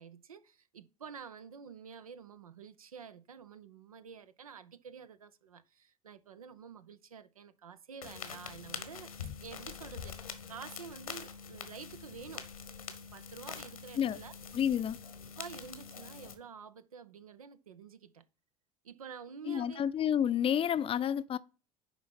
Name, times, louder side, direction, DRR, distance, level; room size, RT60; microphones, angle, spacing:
voice 1, 0.0-9.1 9.4-12.5 12.9-14.3 15.4-18.2 18.8-19.9, right 6 dB, 80° right, 0.7 m, -49 dB
sound 1, 8.0-16.3, left 7 dB, 80° left, 1.3 m, -45 dB
voice 2, 14.5-15.0 19.5-21.4, left 9 dB, 30° left, 0.6 m, -30 dB
10.5 x 4.0 x 5.7 m
figure-of-eight pair, 65°, 18 cm